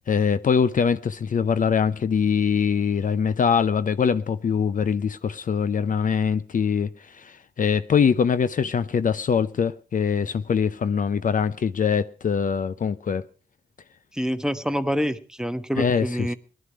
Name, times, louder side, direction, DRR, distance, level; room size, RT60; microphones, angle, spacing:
voice 1, 0.1-13.3 15.8-16.1, left 6 dB, 55° left, 0.6 m, -23 dB
voice 2, 14.1-16.3, equal, 5° right, 1.0 m, -26 dB
18.5 x 11.5 x 4.8 m
cardioid pair, 60°, 17 cm